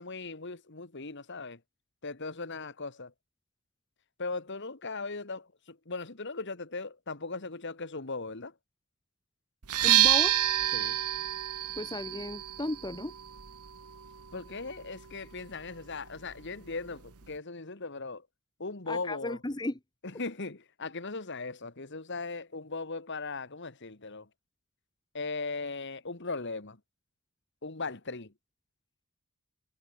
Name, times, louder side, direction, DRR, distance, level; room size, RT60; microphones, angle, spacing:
voice 1, 0.0-1.6 2.0-3.1 4.2-8.5 10.7-11.0 14.3-18.3 18.6-19.4 20.0-24.3 25.1-26.8 27.6-28.3, left 3 dB, 55° left, 1.7 m, -38 dB
sound 1, 9.6-17.4, right 13 dB, 85° right, 1.2 m, -30 dB
voice 2, 9.8-10.3 11.8-13.1 18.9-19.8, left 2 dB, 20° left, 1.0 m, -35 dB
head